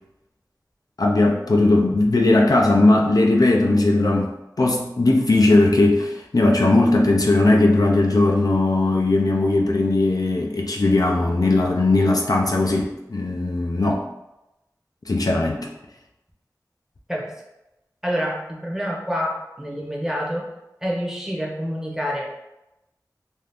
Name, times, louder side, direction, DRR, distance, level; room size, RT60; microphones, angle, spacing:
voice 1, 1.0-14.0 15.1-15.7, left 2 dB, 65° left, 0 dB, 0.4 m, -18 dB
voice 2, 18.0-20.5 20.8-22.3, equal, 5° right, -2 dB, 0.7 m, -27 dB
2.6 x 2.4 x 3.3 m, 0.93 s
wide cardioid pair, 55°, 7 cm